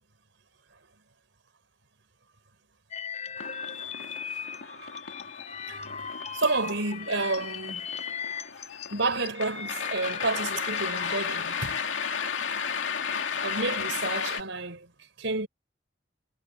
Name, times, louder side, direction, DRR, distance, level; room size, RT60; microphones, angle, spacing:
sound 1, 2.9-11.2, left 6 dB, 40° left, 4.2 m, -38 dB
sound 2, 3.4-14.4, left 6 dB, 90° left, 2.4 m, -34 dB
voice 1, 6.3-7.8 8.9-11.8 13.4-14.9 15.2-15.5, right 3 dB, 85° right, 4.1 m, -30 dB
head